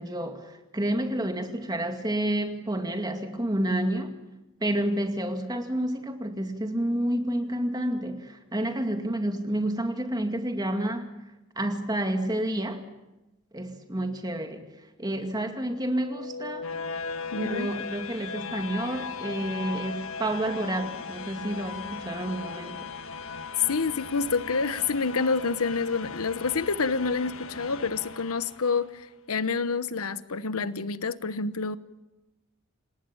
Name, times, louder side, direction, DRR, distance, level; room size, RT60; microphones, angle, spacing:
voice 1, 0.0-4.2 4.6-11.1 11.6-12.9 13.5-14.7 15.0-16.7 17.4-22.9, right 1 dB, 20° right, 6 dB, 2.2 m, -29 dB
sound 1, 15.9-28.9, left 5 dB, 65° left, 1.5 m, -38 dB
voice 2, 17.3-17.7 23.7-31.8, left 4 dB, 85° left, 14 dB, 1.0 m, -28 dB
28.0 x 18.5 x 8.8 m, 0.99 s
head